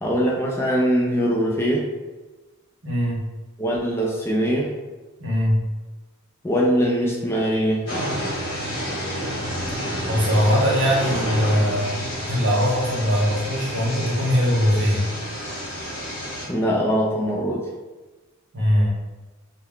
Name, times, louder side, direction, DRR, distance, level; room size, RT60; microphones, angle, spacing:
voice 1, 0.0-1.9 3.6-4.7 6.4-7.8 16.5-17.7, equal, 10° left, -3 dB, 0.3 m, -22 dB
voice 2, 2.8-3.2 5.2-5.6 10.0-12.0 12.3-15.1 18.5-18.9, equal, 55° right, -3 dB, 0.8 m, -21 dB
sound 1, 7.9-16.5, equal, 60° left, 1.2 m, -29 dB
2.3 x 2.1 x 3.4 m, 1.2 s
head